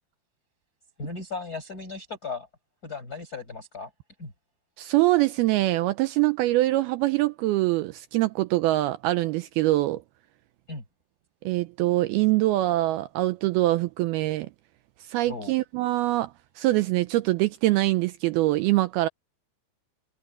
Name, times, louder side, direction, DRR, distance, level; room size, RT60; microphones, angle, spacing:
voice 1, 1.0-2.5 2.8-3.9 4.2-4.3 10.7-10.8 15.3-15.5, left 4 dB, 20° left, 5.7 m, -36 dB
voice 2, 4.8-10.0 11.5-14.5 15.0-19.1, right 17 dB, 85° right, 2.2 m, -24 dB
omnidirectional pair, 5.0 m